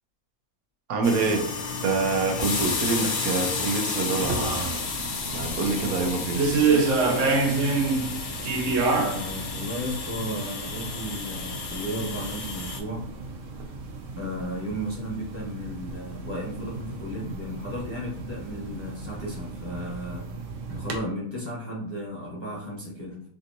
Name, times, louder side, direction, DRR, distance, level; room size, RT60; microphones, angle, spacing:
voice 1, 0.9-1.4 1.8-4.5 5.3-6.9, right 4 dB, 85° right, 2 dB, 1.1 m, -26 dB
sound 1, 1.0-12.8, left 4 dB, 85° left, 1.2 m, -32 dB
sound 2, 4.2-21.0, right 4 dB, 65° right, 0.9 m, -30 dB
voice 2, 8.9-13.1 14.2-20.3 20.7-23.2, equal, 10° left, -5 dB, 0.8 m, -34 dB
3.4 x 2.7 x 2.6 m, 0.66 s
omnidirectional pair, 1.5 m